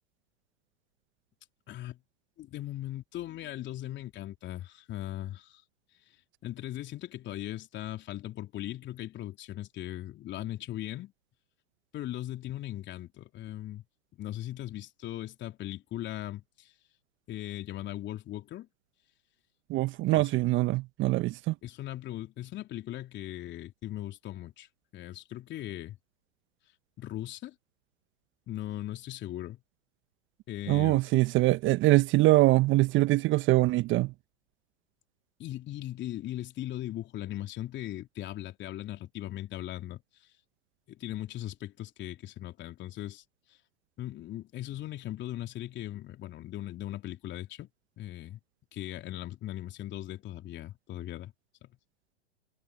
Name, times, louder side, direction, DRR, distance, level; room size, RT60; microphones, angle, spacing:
voice 1, 1.7-2.0 2.4-5.6 6.4-11.1 11.9-13.8 14.2-16.7 17.3-18.7 20.1-20.3 21.6-24.7 24.9-26.0 27.0-27.6 28.5-29.6 30.5-31.0 35.4-40.0 40.9-43.2 44.0-47.7 48.0-48.4 48.7-51.3 51.6-51.7, left 14 dB, 30° left, 3.5 m, -39 dB
voice 2, 19.7-21.5 30.7-34.1, right 18 dB, 30° right, 1.4 m, -23 dB
figure-of-eight pair, 105°, 36 cm